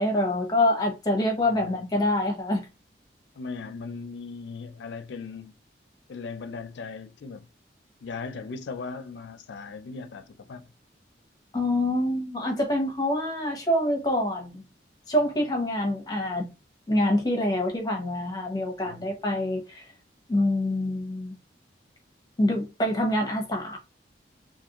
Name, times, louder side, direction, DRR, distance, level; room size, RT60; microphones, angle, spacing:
voice 1, 0.0-2.7 11.5-14.6 15.1-16.5 16.9-19.9 20.3-21.4 22.4-23.8, left 1 dB, 20° left, 0.8 m, -26 dB
voice 2, 1.4-1.8 3.4-5.5 6.1-7.5 8.0-10.7 18.9-19.1, left 4 dB, 80° left, 0.4 m, -38 dB
2.7 x 2.4 x 2.9 m
head